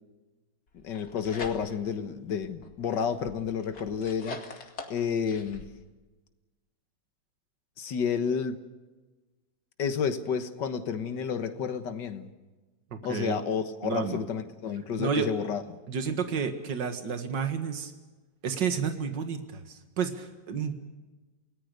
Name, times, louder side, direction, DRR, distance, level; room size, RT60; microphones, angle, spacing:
voice 1, 0.8-5.6 7.8-8.6 9.8-12.3 13.0-15.6, left 7 dB, 75° left, 2.0 m, -31 dB
sound 1, 0.8-2.0 2.4-5.7, left 3 dB, 60° left, 2.9 m, -44 dB
voice 2, 13.8-14.2 15.0-15.3 15.9-17.9 18.4-20.7, right 6 dB, 75° right, 2.4 m, -30 dB
28.5 x 18.5 x 6.7 m
omnidirectional pair, 1.9 m